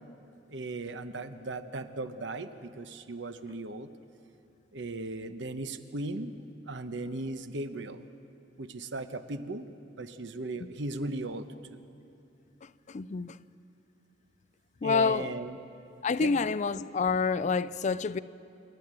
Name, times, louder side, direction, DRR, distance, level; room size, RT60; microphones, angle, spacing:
voice 1, 0.5-3.9 4.7-6.3 6.7-8.1 8.6-9.7 10.0-11.8 14.8-15.6 16.2-16.5, right 2 dB, 75° right, 1.0 m, -37 dB
voice 2, 12.9-13.4 14.8-15.3 16.0-18.2, left 5 dB, 40° left, 0.4 m, -28 dB
28.0 x 11.5 x 9.0 m
head